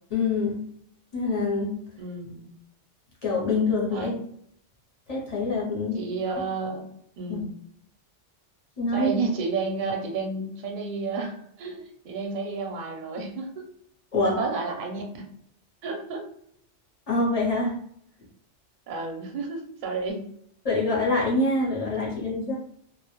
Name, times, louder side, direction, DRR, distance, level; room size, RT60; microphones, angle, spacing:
voice 1, 0.1-0.6 1.1-1.8 3.2-4.1 5.1-6.0 7.3-7.4 8.8-9.1 14.1-14.4 17.1-17.7 20.6-22.6, left 2 dB, 45° left, -4 dB, 0.6 m, -25 dB
voice 2, 2.0-2.5 3.9-4.2 5.9-6.9 7.2-7.5 8.9-13.6 14.2-15.3 15.8-16.3 18.9-20.3, right 4 dB, 55° right, 1 dB, 0.6 m, -31 dB
2.1 x 2.0 x 2.9 m, 0.68 s
omnidirectional pair, 1.2 m